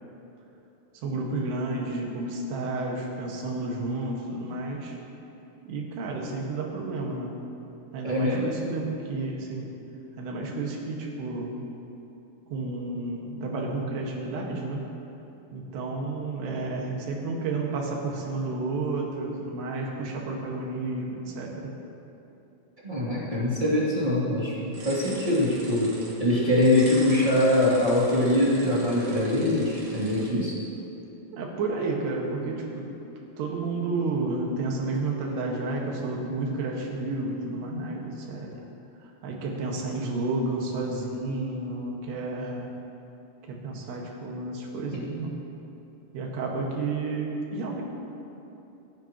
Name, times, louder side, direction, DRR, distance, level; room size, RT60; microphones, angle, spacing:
voice 1, 1.0-5.0 5.7-7.3 7.9-9.7 10.2-11.7 12.5-14.9 15.5-21.7 31.3-32.9 33.4-38.6 39.0-42.7 43.4-45.4 46.1-47.8, right 3 dB, 70° right, -1 dB, 3.6 m, -31 dB
voice 2, 8.0-8.5 22.8-30.5, left 1 dB, 15° right, -9 dB, 1.8 m, -23 dB
sound 1, 24.7-30.3, right 2 dB, 45° right, 2.5 m, -43 dB
28.0 x 9.5 x 3.0 m, 2.9 s
omnidirectional pair, 5.2 m